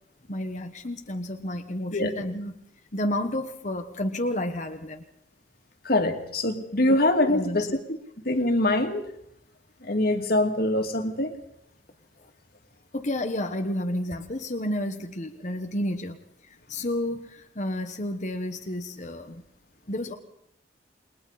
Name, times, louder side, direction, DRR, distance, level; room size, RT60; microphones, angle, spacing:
voice 1, 0.3-2.5 2.9-5.0 6.9-7.0 7.3-7.8 12.9-16.2 16.5-19.4 19.9-20.1, left 1 dB, 45° left, 6 dB, 1.3 m, -31 dB
voice 2, 5.8-7.7 8.2-9.0 9.8-11.3, left 1 dB, 60° left, 5 dB, 2.6 m, -24 dB
28.5 x 22.5 x 4.2 m, 0.75 s
head